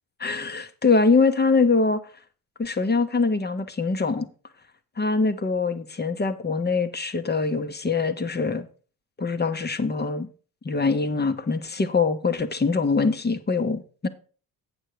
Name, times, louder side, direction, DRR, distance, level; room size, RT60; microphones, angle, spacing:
voice 1, 0.2-2.0 2.6-4.3 5.0-8.7 9.2-10.3 10.6-14.1, left 4 dB, 20° left, 1.1 m, -23 dB
8.8 x 6.7 x 4.9 m
hypercardioid pair, 50°, 44 cm